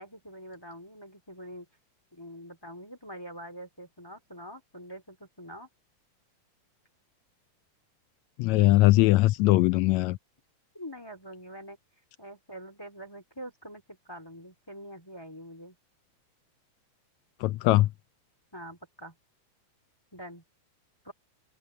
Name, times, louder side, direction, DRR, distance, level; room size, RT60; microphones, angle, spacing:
voice 1, 0.0-1.7 2.1-5.7 10.7-11.8 12.2-15.8 18.5-19.2 20.1-20.4 21.0-21.1, equal, 10° left, 2.1 m, -44 dB
voice 2, 8.4-10.2 17.4-17.9, left 18 dB, 80° left, 1.7 m, -21 dB
open air
omnidirectional pair, 3.5 m